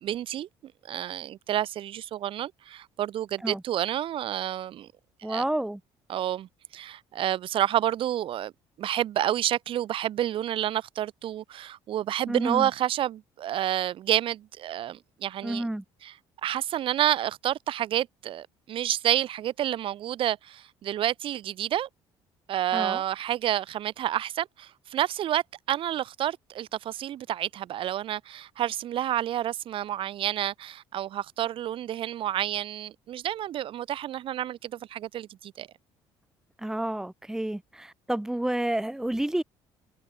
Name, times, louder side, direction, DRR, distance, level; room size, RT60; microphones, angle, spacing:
voice 1, 0.0-4.9 5.2-5.4 6.1-8.5 8.8-15.7 16.0-16.1 16.4-21.9 22.5-35.7, right 12 dB, 55° right, 1.0 m, -29 dB
voice 2, 5.2-5.8 12.3-12.7 15.4-15.8 22.7-23.0 36.6-39.4, right 1 dB, 5° right, 0.7 m, -30 dB
cardioid pair, 105°, 11 cm